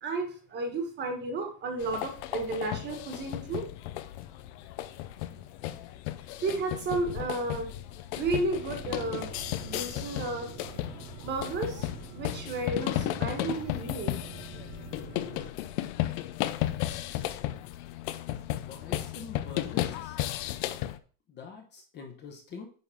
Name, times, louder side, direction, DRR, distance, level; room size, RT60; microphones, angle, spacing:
voice 1, 0.0-3.7 6.4-7.7 8.1-9.3 9.6-10.5 11.2-14.2, right 2 dB, 25° right, 4 dB, 1.4 m, -33 dB
sound 1, 1.8-21.0, left 14 dB, 50° left, 0.6 m, -34 dB
sound 2, 8.5-15.5, right 12 dB, 60° right, 0.7 m, -46 dB
voice 2, 18.5-20.2 21.3-22.7, left 5 dB, 25° left, 3 dB, 1.0 m, -45 dB
9.5 x 3.7 x 5.7 m, 0.40 s
cardioid pair, 175°, 43 cm